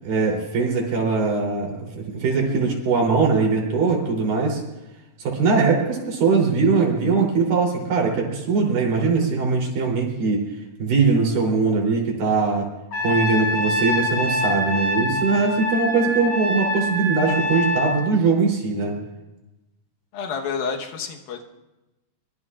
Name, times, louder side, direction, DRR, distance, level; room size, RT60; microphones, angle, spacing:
voice 1, 0.0-1.7 2.0-4.6 5.2-10.4 10.8-12.7 13.0-18.9, right 4 dB, 75° right, -1 dB, 5.1 m, -21 dB
Trumpet, 12.9-18.0, left 1 dB, 40° left, 6.9 m, -25 dB
voice 2, 20.1-21.4, left 5 dB, 90° left, 3 dB, 3.0 m, -29 dB
24.5 x 22.5 x 2.5 m, 1.0 s
omnidirectional pair, 4.0 m